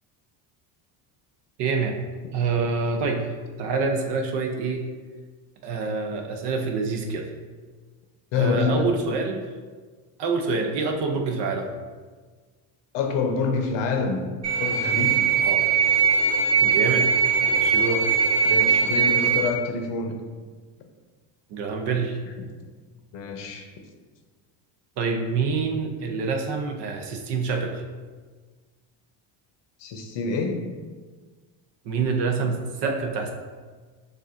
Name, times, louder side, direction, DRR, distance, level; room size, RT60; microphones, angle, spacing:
voice 1, 1.6-2.0 2.3-3.3 3.6-4.9 5.6-7.3 8.3-9.4 10.2-11.7 15.4-15.6 16.6-17.1 17.4-18.1 21.5-22.2 25.0-27.8 31.8-33.3, right 4 dB, 55° right, 3 dB, 0.7 m, -26 dB
voice 2, 8.3-8.8 12.9-14.3 14.6-15.2 18.4-20.2 23.1-23.7 29.8-30.6, left 5 dB, 60° left, 4 dB, 0.8 m, -26 dB
sound 1, 14.4-19.5, right 6 dB, 30° right, 1.0 m, -21 dB
6.5 x 2.5 x 2.5 m, 1.4 s
supercardioid pair, 105°, 50 cm